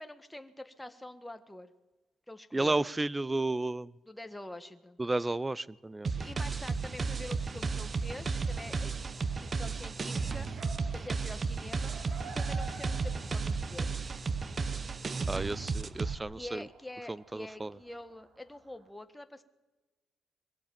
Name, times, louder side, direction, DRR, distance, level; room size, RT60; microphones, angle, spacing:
voice 1, 0.0-1.7 2.3-2.8 4.0-5.0 6.2-10.5 10.9-11.9 12.2-13.9 16.3-19.4, left 1 dB, 10° left, 9 dB, 1.5 m, -46 dB
voice 2, 2.5-3.9 5.0-6.1 15.3-16.6 17.3-17.7, right 2 dB, 15° right, 22 dB, 0.6 m, -32 dB
sound 1, 6.0-16.1, right 4 dB, 35° right, 1.1 m, -34 dB
sound 2, 6.9-18.9, right 4 dB, 65° right, 3.1 m, -53 dB
22.0 x 15.0 x 9.1 m, 1.2 s
cardioid pair, 90°, 0 cm